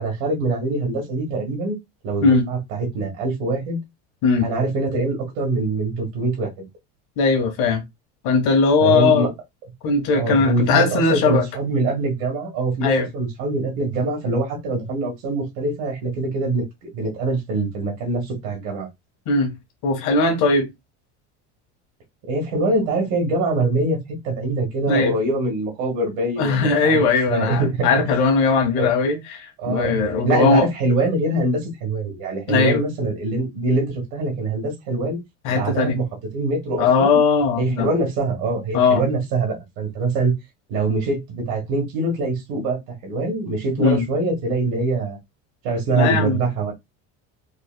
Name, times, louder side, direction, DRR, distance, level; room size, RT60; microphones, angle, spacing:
voice 1, 0.0-1.8 2.0-3.8 4.4-6.7 8.8-9.3 10.1-18.9 22.3-27.0 27.3-27.9 28.8-28.9 29.6-35.2 35.5-36.0 36.3-37.2 37.6-40.3 40.7-45.2 45.6-46.7, right 2 dB, 80° right, 1.7 m, -24 dB
voice 2, 7.2-7.8 8.2-9.3 9.8-11.4 12.8-13.1 19.3-19.5 19.8-20.7 24.9-25.1 26.4-30.7 32.5-32.8 35.4-36.0 36.8-37.9 38.7-39.0 43.8-44.0 45.9-46.4, left 4 dB, 65° left, 1.4 m, -19 dB
4.2 x 2.5 x 2.2 m
cardioid pair, 165°, 33 cm